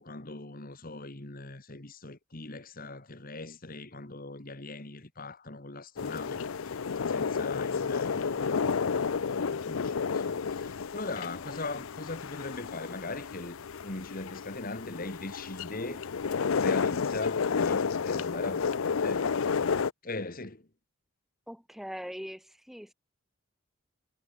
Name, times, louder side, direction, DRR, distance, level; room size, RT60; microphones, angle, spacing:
voice 1, 0.0-8.7 9.4-13.6 13.8-16.1 16.6-19.5 20.0-20.7, left 2 dB, 40° left, 1.9 m, -40 dB
sound 1, 6.0-19.9, left 5 dB, 70° left, 0.5 m, -31 dB
voice 2, 21.5-22.9, equal, ahead, 3.9 m, -41 dB
head